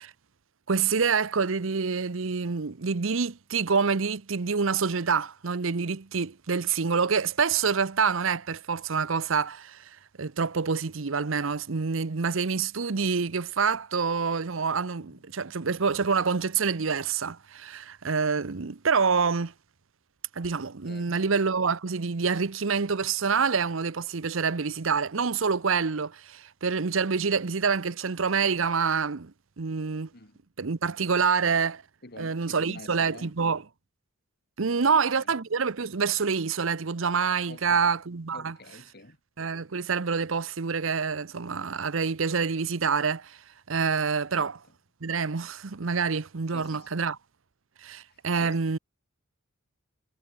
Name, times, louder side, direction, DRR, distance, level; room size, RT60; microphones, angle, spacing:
voice 1, 0.7-19.5 20.4-30.1 30.6-31.8 32.2-33.6 34.6-38.5 39.4-43.4 43.7-44.6 45.0-47.2 47.8-48.8, right 5 dB, 65° right, 0.8 m, -27 dB
voice 2, 20.8-21.3 30.1-30.4 30.8-31.2 32.0-33.4 34.6-35.3 37.4-37.9 38.3-39.2 44.3-44.7 46.5-47.0 48.1-48.6, left 2 dB, 50° left, 4.6 m, -48 dB
head